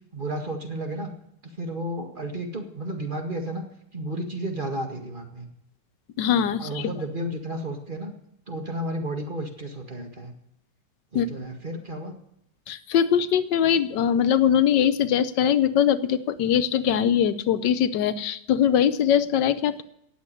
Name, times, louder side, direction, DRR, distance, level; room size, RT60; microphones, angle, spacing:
voice 1, 0.1-1.1 1.4-3.6 3.9-5.5 6.6-8.1 8.5-10.3 11.1-12.2, right 1 dB, 30° right, 4 dB, 2.0 m, -32 dB
voice 2, 6.2-6.9 11.1-11.3 12.7-19.8, left 9 dB, 85° left, 12 dB, 1.4 m, -22 dB
18.0 x 7.3 x 9.9 m, 0.76 s
omnidirectional pair, 1.8 m